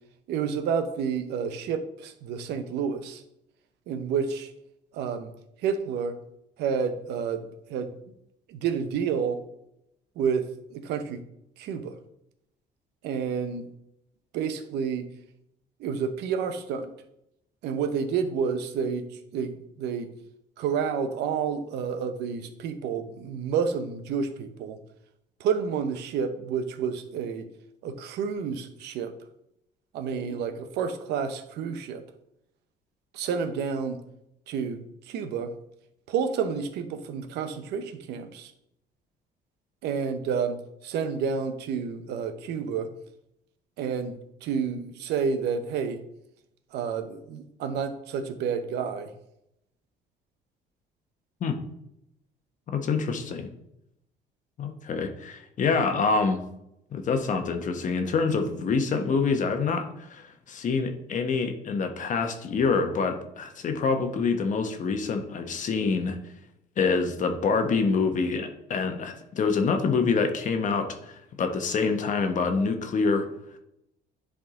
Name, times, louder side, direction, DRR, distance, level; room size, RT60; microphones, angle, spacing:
voice 1, 0.3-3.2 3.9-4.5 4.9-5.3 5.6-6.2 6.6-7.9 8.5-9.4 10.2-11.2 11.6-12.0 13.0-13.7 14.3-15.1 15.8-16.9 17.6-19.1 19.3-20.1 20.6-24.8 25.4-27.5 27.8-29.1 29.9-32.0 33.1-34.0 34.5-34.8 35.1-35.5 36.1-38.5 39.8-42.9 43.8-46.0 46.7-49.1, right 6 dB, 80° right, 9 dB, 0.8 m, -29 dB
voice 2, 52.7-53.5 54.6-56.4 56.9-66.2 66.8-73.3, left 4 dB, 50° left, 6 dB, 1.0 m, -26 dB
10.5 x 3.7 x 3.7 m, 0.80 s
cardioid pair, 110°, 17 cm